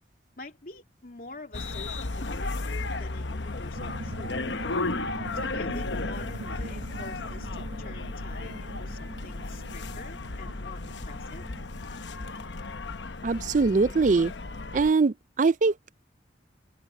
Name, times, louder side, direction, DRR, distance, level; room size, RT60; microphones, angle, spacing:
voice 1, 0.4-4.3 5.4-11.4, left 2 dB, 50° left, 2.9 m, -47 dB
sound 1, 1.5-14.9, left 3 dB, 80° left, 1.0 m, -34 dB
sound 2, 3.8-12.9, right 2 dB, 75° right, 1.1 m, -43 dB
voice 2, 13.2-14.3 14.7-15.9, right 4 dB, 45° right, 0.4 m, -22 dB
head